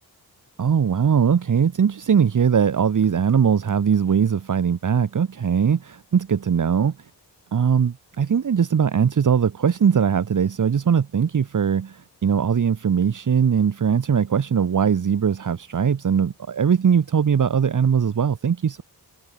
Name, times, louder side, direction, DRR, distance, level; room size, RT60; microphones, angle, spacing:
voice 1, 0.6-7.1 7.5-18.8, right 7 dB, 50° right, 1.7 m, -20 dB
wide cardioid pair, 140°, 38 cm